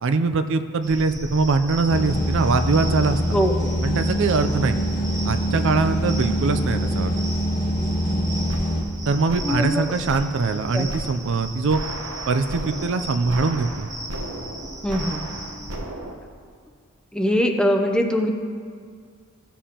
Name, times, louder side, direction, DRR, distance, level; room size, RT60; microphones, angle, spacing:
voice 1, 0.0-3.4 3.8-4.8 5.2-7.2 9.1-11.8 12.3-13.9, right 4 dB, 60° right, 9 dB, 0.4 m, -22 dB
sound 1, 0.8-15.8, right 1 dB, 15° right, 0.9 m, -36 dB
sound 2, 1.9-8.8, equal, 45° left, 1.5 m, -24 dB
voice 2, 3.3-3.7 9.4-9.8 10.7-10.9 14.8-15.3 17.1-18.3, equal, 5° left, 4 dB, 0.6 m, -22 dB
sound 3, 7.9-16.1, right 1 dB, 85° right, 1.0 m, -35 dB
15.5 x 7.2 x 2.9 m, 2.1 s
head